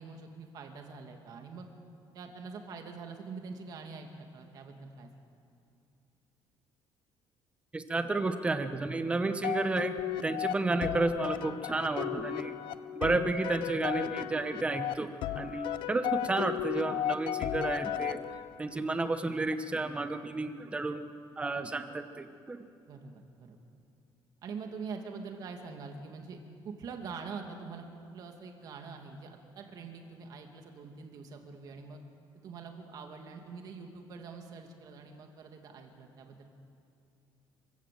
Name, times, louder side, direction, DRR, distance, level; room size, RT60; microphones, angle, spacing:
voice 1, 0.0-1.7 2.1-5.1 21.5-21.7 22.9-23.6 24.4-26.4 26.6-32.0 32.4-36.5, right 5 dB, 45° right, 4 dB, 2.5 m, -44 dB
voice 2, 7.7-10.0 10.2-12.5 13.0-15.1 15.4-18.2 18.6-21.0 21.4-22.6, right 2 dB, 15° right, 9 dB, 1.0 m, -31 dB
sound 1, 9.4-18.7, left 12 dB, 65° left, 0.8 m, -35 dB
26.5 x 16.0 x 7.7 m, 2.5 s
cardioid pair, 165°, 9 cm